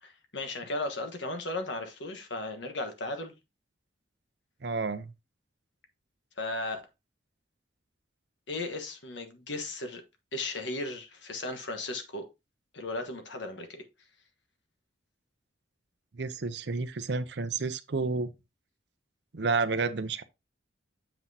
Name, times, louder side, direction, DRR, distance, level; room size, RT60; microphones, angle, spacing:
voice 1, 0.0-3.3 6.4-6.8 8.5-10.0 10.3-12.3 12.7-13.8, left 2 dB, 70° left, 1.3 m, -36 dB
voice 2, 4.6-5.1 16.2-18.3 19.3-20.2, right 4 dB, 60° right, 0.6 m, -30 dB
7.5 x 5.9 x 2.8 m
head